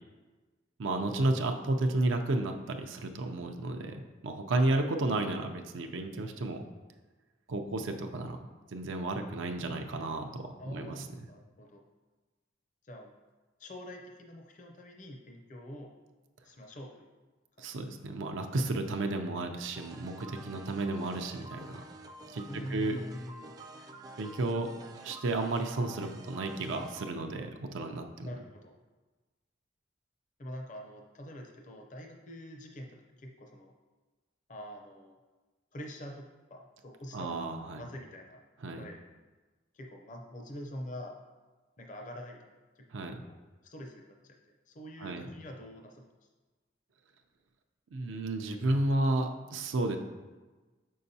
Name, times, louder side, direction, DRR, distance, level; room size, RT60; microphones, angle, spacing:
voice 1, 0.8-6.6 7.5-8.4 8.7-11.1 17.6-21.8 22.3-23.0 24.2-28.3 37.1-37.8 38.6-38.8 42.9-43.2 45.0-45.3 47.9-50.0, right 2 dB, 85° right, 4 dB, 0.5 m, -32 dB
voice 2, 10.6-11.8 12.8-13.1 13.6-15.9 16.4-17.1 17.6-17.7 22.5-23.5 28.2-28.7 30.4-33.7 34.5-35.2 35.7-37.4 37.8-38.4 38.8-39.0 39.7-41.2 41.8-42.8 43.2-44.4 44.7-46.0, equal, 40° left, 2 dB, 0.5 m, -45 dB
sound 1, 19.7-27.1, right 2 dB, 20° right, 0.3 m, -49 dB
6.9 x 5.5 x 2.7 m, 1.3 s
head